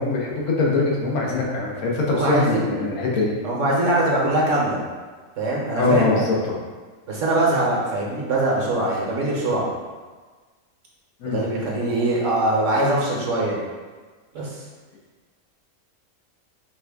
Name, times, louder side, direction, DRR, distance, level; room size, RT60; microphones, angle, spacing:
voice 1, 0.0-3.3 5.8-6.6 11.2-11.4, left 3 dB, 80° left, -3 dB, 1.3 m, -22 dB
voice 2, 2.1-2.8 3.4-4.8 5.4-6.3 7.1-9.7 11.3-13.6 14.3-14.6, right 1 dB, 60° right, -3 dB, 1.2 m, -22 dB
4.9 x 2.3 x 3.4 m, 1.4 s
omnidirectional pair, 1.5 m